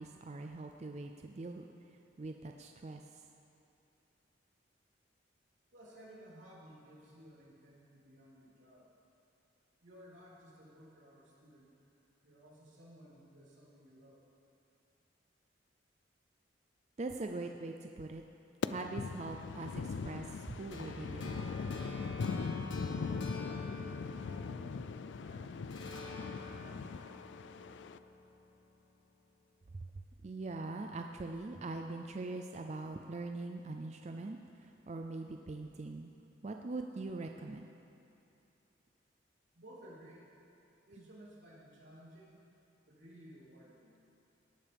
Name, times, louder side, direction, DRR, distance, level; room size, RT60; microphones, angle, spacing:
voice 1, 0.0-1.6 2.2-3.2 17.0-18.2 18.7-21.5 29.7-29.9 30.2-36.1 36.4-37.7 41.0-41.1, right 3 dB, 35° right, 4 dB, 0.4 m, -42 dB
voice 2, 5.7-8.9 9.8-11.7 12.2-14.2 23.4-26.8 39.5-40.3 40.9-42.4 42.8-44.0, equal, 85° right, -6 dB, 3.3 m, -56 dB
sound 1, 18.6-28.0, left 5 dB, 75° left, 0.4 m, -40 dB
sound 2, 20.7-25.2 25.7-28.8, left 3 dB, 90° left, 1.5 m, -48 dB
17.5 x 12.0 x 3.5 m, 2.7 s
head